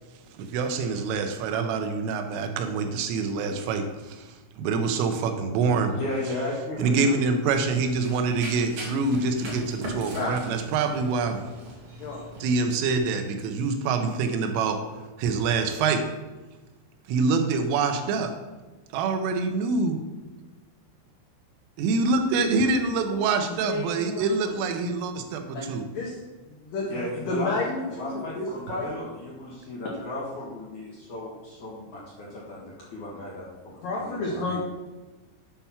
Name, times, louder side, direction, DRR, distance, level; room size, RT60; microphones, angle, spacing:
voice 1, 0.3-6.0 6.8-11.5 12.4-14.9 15.2-16.1 17.1-18.4 18.9-20.1 21.8-25.9, right 4 dB, 90° right, 6 dB, 3.4 m, -26 dB
voice 2, 5.9-7.2 26.9-27.5 27.9-34.6, left 1 dB, 60° left, -6 dB, 2.1 m, -35 dB
Run, 7.4-13.0, right 1 dB, 65° right, 1.5 m, -40 dB
voice 3, 23.4-24.6 25.5-26.2 26.5-28.9 33.8-34.6, left 2 dB, 80° left, -2 dB, 2.0 m, -31 dB
8.8 x 5.6 x 6.0 m, 1.2 s
omnidirectional pair, 5.9 m